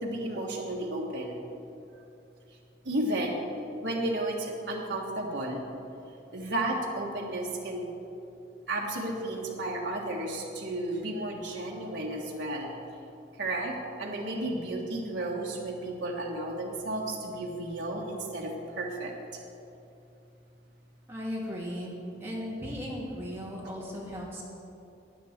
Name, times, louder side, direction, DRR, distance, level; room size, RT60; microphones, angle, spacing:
voice 1, 0.0-1.3 2.8-3.4 3.8-5.6 6.3-7.9 8.7-12.7 13.4-19.1, right 1 dB, 65° right, -2 dB, 1.6 m, -33 dB
voice 2, 21.1-21.9 22.2-24.4, equal, 15° right, -6 dB, 2.7 m, -36 dB
16.0 x 9.8 x 4.4 m, 2.7 s
head